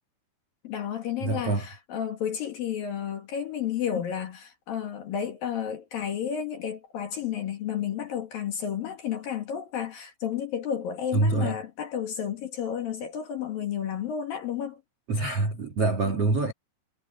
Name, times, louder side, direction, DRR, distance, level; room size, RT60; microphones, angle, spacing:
voice 1, 0.6-14.8, left 9 dB, 55° left, 2.9 m, -32 dB
voice 2, 1.2-1.7 11.1-11.6 15.1-16.5, right 3 dB, 65° right, 1.5 m, -25 dB
omnidirectional pair, 5.9 m